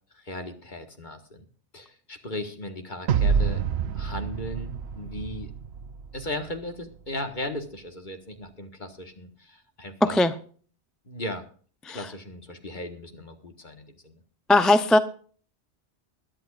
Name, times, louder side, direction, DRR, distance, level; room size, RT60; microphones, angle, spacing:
voice 1, 0.1-1.5 1.7-3.6 3.9-5.5 6.1-10.2 11.1-11.5 11.9-14.2, left 1 dB, 45° left, 6 dB, 1.8 m, -37 dB
sound 1, 3.1-6.4, right 6 dB, 70° right, 0.9 m, -27 dB
voice 2, 10.0-10.3 11.9-12.0 14.5-15.0, left 2 dB, ahead, 10 dB, 0.5 m, -19 dB
21.5 x 11.0 x 2.5 m, 0.43 s
omnidirectional pair, 1.1 m